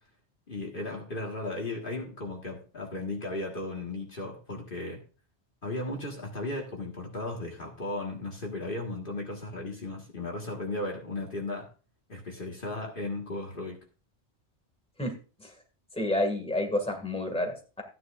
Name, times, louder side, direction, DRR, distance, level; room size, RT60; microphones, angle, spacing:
voice 1, 0.5-5.0 5.6-11.7 12.1-13.8, left 2 dB, 55° left, 1 dB, 1.9 m, -35 dB
voice 2, 15.9-17.8, left 1 dB, 5° left, 4 dB, 2.0 m, -29 dB
14.0 x 9.6 x 2.5 m, 0.34 s
omnidirectional pair, 1.1 m